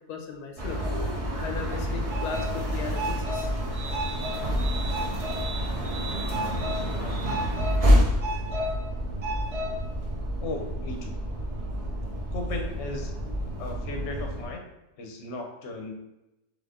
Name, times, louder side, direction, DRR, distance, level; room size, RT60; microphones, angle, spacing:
voice 1, 0.1-0.8 1.4-3.5, left 6 dB, 80° left, 4 dB, 1.2 m, -37 dB
sound 1, 0.6-14.4, equal, 45° right, 0.5 m, -28 dB
voice 2, 6.3-6.6 6.9-7.2 10.4-11.2 12.3-13.1 13.6-14.6 15.0-15.9, left 2 dB, 55° left, 3 dB, 0.9 m, -36 dB
4.0 x 3.4 x 3.6 m, 0.93 s
omnidirectional pair, 1.7 m